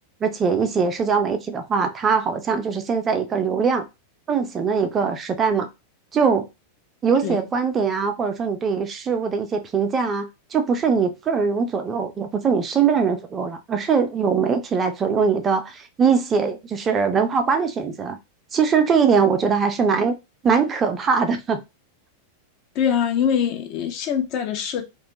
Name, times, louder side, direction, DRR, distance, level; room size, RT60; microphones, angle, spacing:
voice 1, 0.2-3.9 4.3-5.7 6.1-6.5 7.0-18.2 18.5-20.1 20.4-21.6, right 5 dB, 25° right, 0.4 m, -21 dB
voice 2, 22.8-24.8, left 8 dB, 40° left, 0.5 m, -23 dB
2.4 x 2.1 x 2.7 m
figure-of-eight pair, 90°, 0 cm